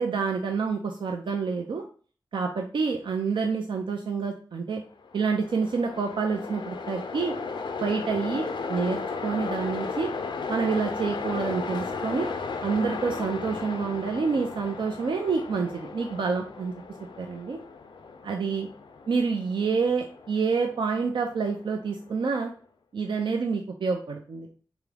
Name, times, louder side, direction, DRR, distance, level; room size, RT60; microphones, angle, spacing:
voice 1, 0.0-1.8 2.3-4.8 5.1-7.3 7.8-10.1 10.5-12.3 12.6-16.7 17.2-17.6 18.2-18.7 19.1-22.5 22.9-24.5, right 5 dB, 85° right, 2 dB, 0.5 m, -28 dB
Train, 5.0-22.2, left 4 dB, 80° left, 0.4 m, -35 dB
3.6 x 3.0 x 3.3 m, 0.41 s
wide cardioid pair, 80°, 8 cm